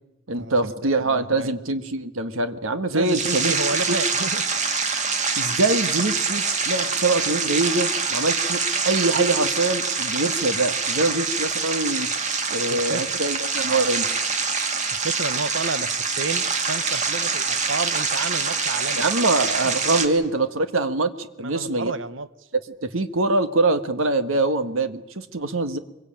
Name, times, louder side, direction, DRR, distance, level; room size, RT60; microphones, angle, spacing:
voice 1, 0.3-3.6 5.4-12.1 12.5-14.2 19.0-21.9 22.8-25.8, right 2 dB, 85° right, 1.6 m, -24 dB
voice 2, 1.0-1.5 2.9-4.5 12.7-13.2 14.9-19.0 19.6-19.8 21.4-22.3, right 3 dB, 70° right, 1.1 m, -31 dB
sound 1, 3.0-20.1, right 4 dB, 35° right, 2.0 m, -25 dB
24.0 x 23.0 x 8.9 m
head